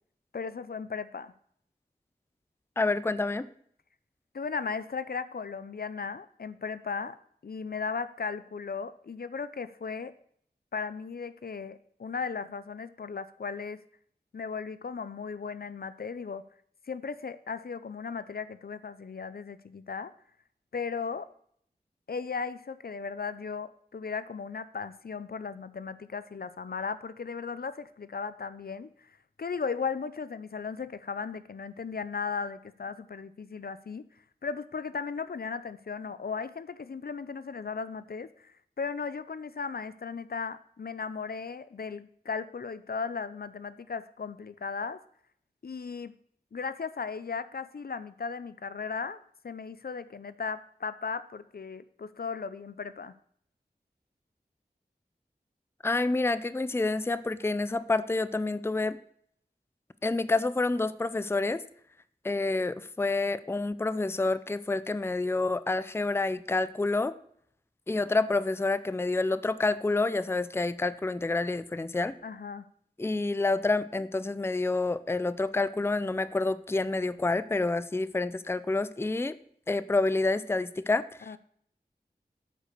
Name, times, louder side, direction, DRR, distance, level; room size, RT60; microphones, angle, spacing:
voice 1, 0.3-1.3 4.3-7.2 7.4-10.1 10.7-13.8 14.3-16.4 16.9-20.1 20.7-21.3 22.1-34.0 34.4-45.0 45.6-46.1 46.5-49.2 49.4-53.1 72.2-72.7 81.3-81.4, left 5 dB, 65° left, 14 dB, 0.5 m, -36 dB
voice 2, 2.8-3.5 55.8-59.0 60.0-61.6 62.2-67.1 67.9-72.1 73.0-79.4 79.7-81.4, left 3 dB, 15° left, 15 dB, 0.4 m, -28 dB
8.7 x 5.0 x 6.7 m, 0.65 s
wide cardioid pair, 45°, 17 cm